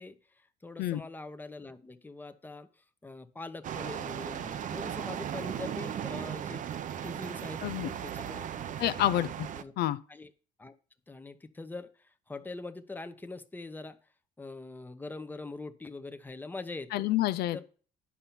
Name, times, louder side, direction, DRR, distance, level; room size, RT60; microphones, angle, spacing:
voice 1, 0.0-6.6 7.0-9.0 9.5-9.7 10.1-10.3 10.6-10.7 11.1-14.0 14.4-17.1 17.5-17.6, left 3 dB, 10° left, 0.8 m, -43 dB
sound 1, 3.6-9.6, right 9 dB, 50° right, 0.6 m, -37 dB
voice 2, 8.8-9.5 9.8-10.0 16.9-17.6, left 14 dB, 70° left, 0.5 m, -28 dB
9.9 x 5.4 x 5.8 m
cardioid pair, 110°, 17 cm